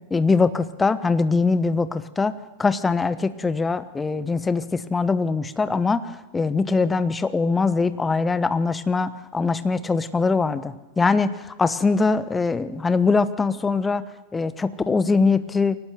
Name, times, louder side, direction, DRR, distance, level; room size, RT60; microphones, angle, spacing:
voice 1, 0.1-2.3 2.6-6.1 6.3-14.0 14.3-15.8, left 4 dB, 15° left, 14 dB, 1.1 m, -22 dB
23.5 x 18.0 x 7.7 m, 1.2 s
figure-of-eight pair, 90°, 0 cm